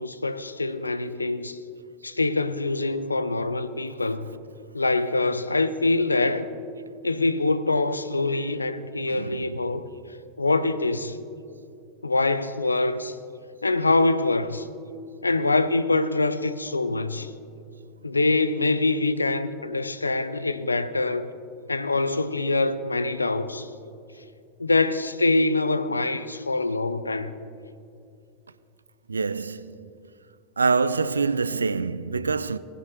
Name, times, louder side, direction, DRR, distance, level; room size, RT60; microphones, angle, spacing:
voice 1, 0.0-1.6 2.0-4.3 4.7-6.5 7.0-9.9 10.4-11.2 12.0-13.2 13.6-14.7 15.2-17.3 18.0-21.3 21.7-23.7 24.6-27.3, left 2 dB, 80° left, 0.5 m, -24 dB
voice 2, 9.1-9.5 29.1-29.7 30.6-32.6, right 4 dB, 75° right, 0.3 m, -25 dB
19.0 x 10.0 x 2.9 m
figure-of-eight pair, 90°, 0 cm